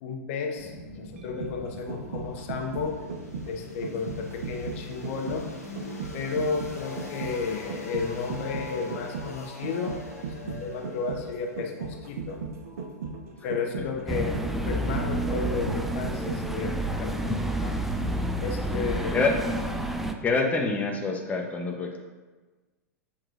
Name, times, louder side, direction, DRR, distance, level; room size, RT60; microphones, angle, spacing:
voice 1, 0.0-3.0 3.5-5.5 6.1-10.0 10.4-12.4 13.4-17.8 18.4-19.2, left 5 dB, 50° left, 3 dB, 1.1 m, -33 dB
sound 1, 0.6-13.4, left 2 dB, 75° left, 1.2 m, -43 dB
sound 2, 1.2-17.0 17.4-17.5, right 5 dB, 65° right, 0.8 m, -37 dB
sound 3, 14.1-20.1, right 1 dB, ahead, 0.5 m, -29 dB
voice 2, 19.1-19.6 20.2-22.0, left 3 dB, 15° left, 2 dB, 1.0 m, -26 dB
7.6 x 7.2 x 2.6 m, 1.3 s
figure-of-eight pair, 95°, 9 cm